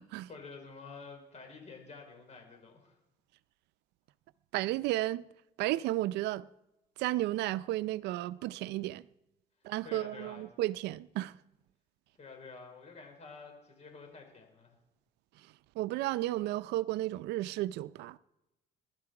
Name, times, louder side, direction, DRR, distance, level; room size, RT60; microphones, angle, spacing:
voice 1, 0.3-3.0 9.8-10.4 12.2-14.8, left 4 dB, 40° left, 5.3 m, -49 dB
voice 2, 4.5-5.2 5.6-6.5 7.0-9.0 9.6-11.4 15.4-18.2, right 16 dB, 85° right, 0.5 m, -33 dB
22.0 x 12.0 x 4.9 m
cardioid pair, 110°, 17 cm